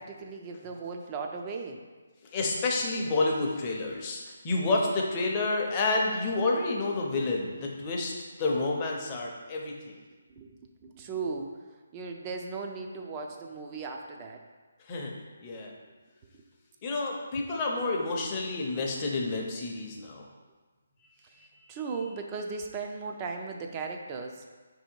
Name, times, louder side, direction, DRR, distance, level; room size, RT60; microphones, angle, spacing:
voice 1, 0.0-1.8 10.3-11.5 11.9-14.4 21.7-24.5, right 4 dB, 20° right, 3 dB, 0.4 m, -37 dB
voice 2, 2.3-8.1 8.4-10.0 14.8-15.1 15.4-15.7 16.8-20.2 21.3-21.5, left 3 dB, 25° left, -1 dB, 0.6 m, -29 dB
4.3 x 2.7 x 4.4 m, 1.4 s
hypercardioid pair, 165°, 0 cm